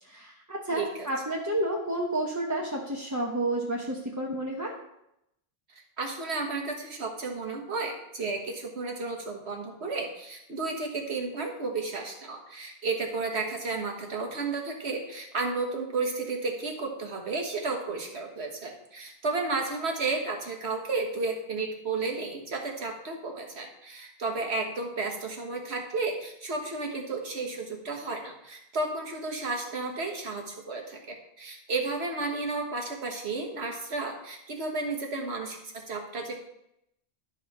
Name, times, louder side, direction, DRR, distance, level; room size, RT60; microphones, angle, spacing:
voice 1, 0.0-4.8, right 1 dB, 15° right, -2 dB, 1.0 m, -30 dB
voice 2, 0.7-1.1 6.0-36.4, right 3 dB, 80° right, 2 dB, 1.7 m, -32 dB
12.0 x 5.5 x 4.2 m, 0.82 s
omnidirectional pair, 1.1 m